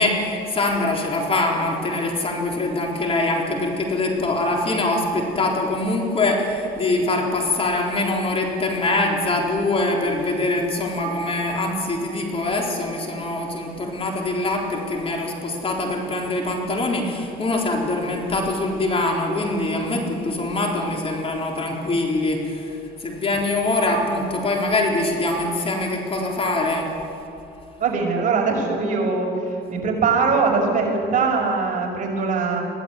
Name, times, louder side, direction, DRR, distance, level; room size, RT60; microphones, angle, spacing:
voice 1, 0.0-26.9, left 2 dB, 35° left, 1 dB, 4.0 m, -23 dB
voice 2, 27.8-29.3 29.7-32.6, right 4 dB, 50° right, 0 dB, 6.0 m, -21 dB
22.0 x 16.5 x 9.5 m, 2.8 s
cardioid pair, 110°, 17 cm